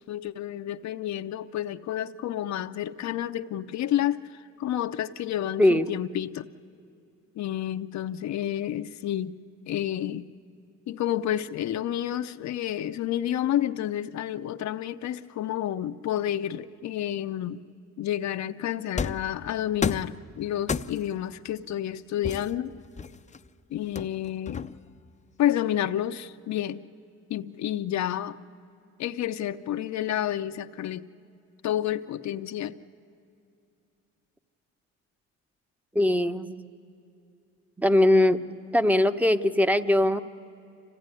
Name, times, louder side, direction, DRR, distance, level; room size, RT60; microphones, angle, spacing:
voice 1, 0.1-6.5 7.4-9.4 9.7-10.3 10.9-17.6 18.0-22.8 23.7-24.7 25.4-26.8 27.3-28.4 29.0-31.1 31.6-32.8, left 11 dB, 65° left, 0.6 m, -30 dB
sound 1, 19.0-19.3 19.8-20.2 20.7-21.2 22.2-23.4 24.0-25.0, left 5 dB, 25° left, 0.5 m, -31 dB
voice 2, 35.9-36.6 37.8-38.4 38.7-40.2, left 1 dB, 5° right, 0.9 m, -21 dB
26.0 x 16.5 x 9.8 m
cardioid pair, 90°, 30 cm